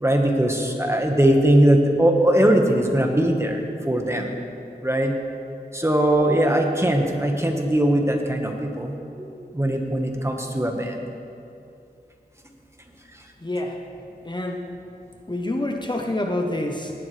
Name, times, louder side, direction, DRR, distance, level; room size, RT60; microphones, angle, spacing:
voice 1, 0.0-4.4 4.8-5.1 5.7-11.1, right 1 dB, 15° right, 2 dB, 1.5 m, -20 dB
voice 2, 13.4-13.8 14.2-14.7 15.3-16.9, left 1 dB, 25° left, 2 dB, 1.0 m, -27 dB
18.0 x 12.0 x 3.4 m, 2.7 s
wide cardioid pair, 45°, 17 cm